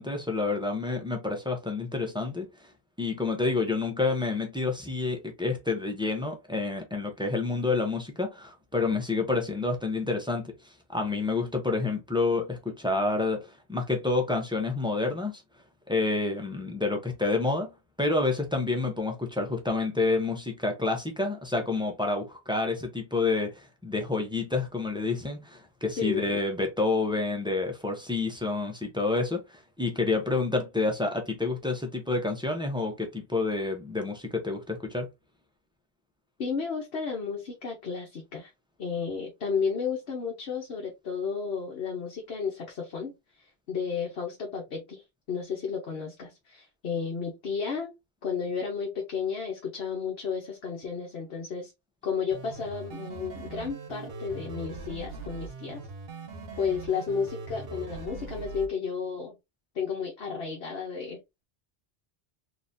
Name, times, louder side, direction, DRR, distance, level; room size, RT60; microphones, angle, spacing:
voice 1, 0.0-2.5 3.0-10.5 10.9-15.4 15.9-17.7 18.0-29.4 29.8-35.1, left 3 dB, 5° right, 0.8 m, -28 dB
voice 2, 26.0-26.4 36.4-38.5 38.8-47.9 48.2-51.7 52.0-55.8 56.6-59.3 59.7-61.2, left 6 dB, 70° left, 1.1 m, -32 dB
sound 1, 52.3-58.7, right 4 dB, 65° right, 1.1 m, -41 dB
3.9 x 2.9 x 2.6 m
omnidirectional pair, 1.1 m